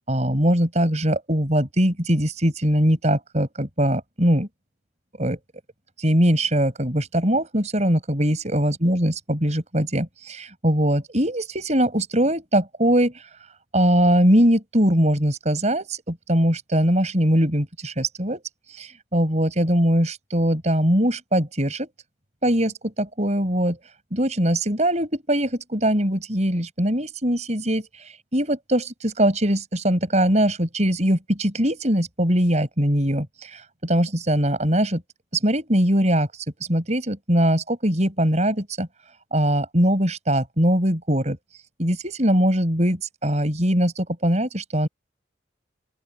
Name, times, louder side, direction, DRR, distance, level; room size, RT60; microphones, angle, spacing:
voice 1, 0.1-4.5 5.2-5.4 6.0-13.1 13.7-18.4 18.8-21.9 22.4-23.8 24.1-27.9 28.3-35.0 35.4-36.3 36.7-38.9 39.3-41.4 41.8-44.9, equal, 40° right, 6.0 m, -21 dB
open air
head